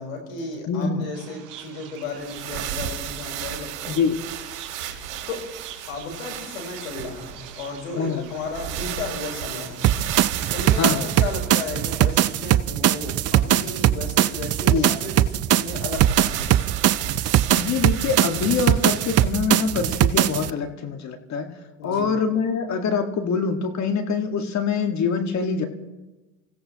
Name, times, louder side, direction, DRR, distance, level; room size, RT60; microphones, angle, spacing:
voice 1, 0.0-4.0 5.3-5.4 5.9-9.9 10.5-16.3 21.8-22.1, left 3 dB, 80° left, 1 dB, 4.1 m, -34 dB
voice 2, 0.7-1.0 3.9-4.2 8.0-8.3 10.8-11.1 14.7-14.9 17.5-21.5 21.8-25.7, left 5 dB, 45° left, 5 dB, 1.7 m, -24 dB
sound 1, 1.1-12.3, right 10 dB, 55° right, 3.5 m, -46 dB
sound 2, 2.0-12.1 15.9-19.2, right 9 dB, 75° right, 2.2 m, -34 dB
sound 3, 9.8-20.5, right 13 dB, 40° right, 0.6 m, -21 dB
27.0 x 16.0 x 2.9 m, 1.1 s
hypercardioid pair, 75°, 40 cm